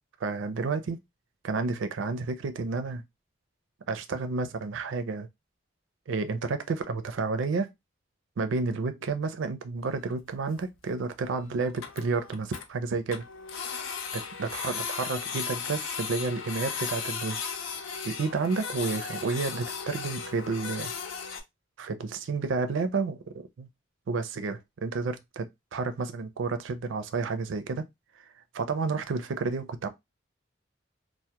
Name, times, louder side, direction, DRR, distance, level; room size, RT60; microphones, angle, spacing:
voice 1, 0.2-1.0 1.4-3.0 3.9-5.3 6.1-7.7 8.4-13.3 14.1-17.4 18.0-20.9 21.8-23.7 24.1-27.9 28.5-29.9, right 4 dB, 70° right, 0.4 m, -31 dB
Printer, 9.8-9.9 10.1-10.2 10.6-10.7 10.9-11.0 11.3-11.4 11.6-12.7 13.1-21.4, left 6 dB, 80° left, 0.4 m, -36 dB
2.2 x 2.0 x 2.8 m
head